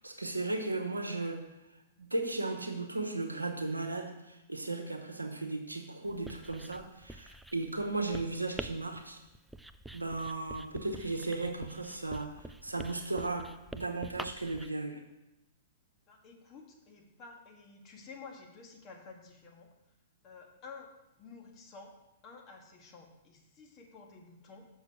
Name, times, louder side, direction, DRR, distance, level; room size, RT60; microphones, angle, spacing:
voice 1, 0.0-1.4 2.0-9.2 9.9-15.0, right 2 dB, 90° right, 4 dB, 1.0 m, -36 dB
Writing, 6.1-14.7, right 1 dB, 5° right, 0.3 m, -47 dB
voice 2, 16.1-19.7 20.2-20.9 21.2-21.9 22.2-24.7, left 4 dB, 35° left, 2 dB, 1.6 m, -51 dB
7.1 x 6.3 x 4.7 m, 0.94 s
figure-of-eight pair, 110°, 0 cm